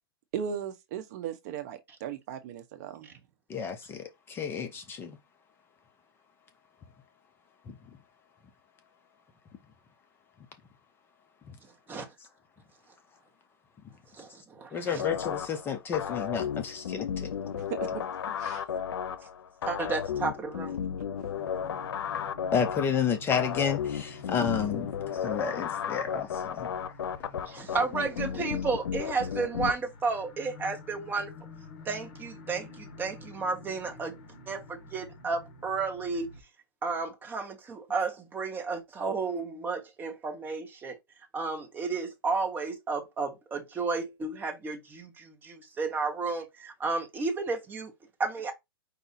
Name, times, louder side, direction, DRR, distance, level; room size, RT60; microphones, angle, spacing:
voice 1, 0.3-3.1 17.8-17.9 18.4-18.6, right 8 dB, 45° right, 0.8 m, -37 dB
voice 2, 3.5-5.2 11.5-11.6 14.7-17.3 22.5-26.7, left 7 dB, 15° left, 0.6 m, -31 dB
voice 3, 14.1-15.0 19.6-20.8 27.5-31.3 31.8-36.3 36.8-41.0 41.3-47.9 48.2-48.5, right 4 dB, 15° right, 1.0 m, -32 dB
sound 1, 15.0-29.7, left 8 dB, 85° left, 0.7 m, -34 dB
sound 2, 21.3-36.4, left 3 dB, 40° left, 1.7 m, -49 dB
4.9 x 2.7 x 4.1 m
hypercardioid pair, 145°, 13 cm